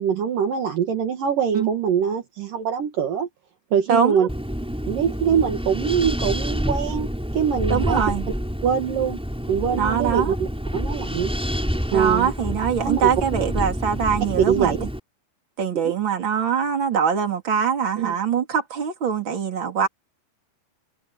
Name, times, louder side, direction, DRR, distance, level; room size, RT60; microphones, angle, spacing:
voice 1, 0.0-3.3 3.7-4.3 4.9-8.0 8.6-9.2 9.5-11.3 11.9-12.3 12.8-13.4 14.4-14.8 15.8-16.0 18.0-18.2, right 7 dB, 65° right, 3.3 m, -23 dB
voice 2, 3.9-4.3 7.7-8.3 9.8-10.3 11.9-14.8 15.6-19.9, right 7 dB, 35° right, 3.8 m, -23 dB
Wind, 4.3-15.0, equal, ahead, 6.5 m, -28 dB
omnidirectional pair, 4.3 m